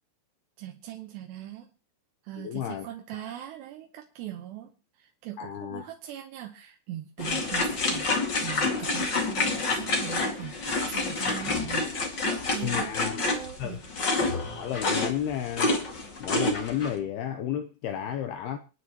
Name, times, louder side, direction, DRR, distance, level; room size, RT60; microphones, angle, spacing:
voice 1, 0.6-1.7 2.2-8.1 8.4-10.5 10.9-11.9 12.2-13.8, right 12 dB, 75° right, 2.9 m, -40 dB
voice 2, 2.4-2.9 3.1-3.2 5.4-5.9 12.6-13.3 13.6-13.8 14.6-15.7 16.2-18.6, left 10 dB, 85° left, 2.2 m, -32 dB
sound 1, 7.2-16.9, left 3 dB, 45° left, 1.4 m, -28 dB
28.5 x 10.0 x 3.1 m
omnidirectional pair, 5.7 m